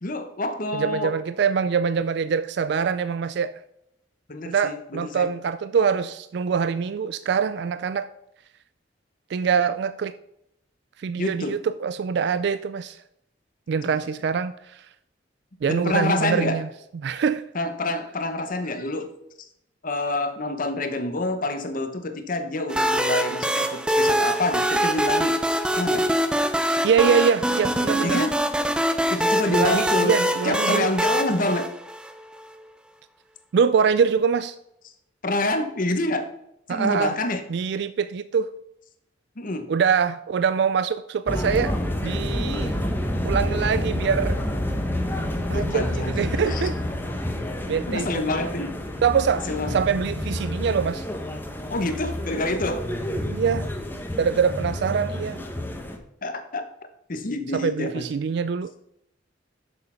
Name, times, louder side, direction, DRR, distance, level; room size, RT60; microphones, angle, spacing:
voice 1, 0.0-1.2 4.3-5.3 11.2-11.6 13.8-14.0 15.6-16.6 17.5-19.1 19.8-25.4 25.7-26.1 28.0-28.3 29.1-30.1 30.4-31.7 35.2-36.3 36.7-37.4 39.4-39.7 45.5-46.1 46.5-46.6 47.9-48.7 49.5-49.8 51.7-52.9 56.2-56.6 57.1-58.1, left 2 dB, 45° left, 1.0 m, -27 dB
voice 2, 0.7-3.5 4.5-8.1 9.3-10.1 11.0-13.0 13.7-14.9 15.6-16.7 17.0-17.4 26.8-28.2 29.5-30.9 33.5-34.5 36.7-37.1 37.5-38.5 39.7-42.8 43.2-44.4 45.5-46.8 47.7-48.3 49.0-51.0 53.3-53.7 54.2-55.4 57.5-58.7, right 6 dB, 60° right, 0.3 m, -24 dB
sound 1, 22.7-32.3, right 1 dB, 5° right, 0.5 m, -23 dB
sound 2, 41.3-56.0, left 1 dB, 10° left, 0.9 m, -28 dB
6.8 x 6.5 x 5.6 m
head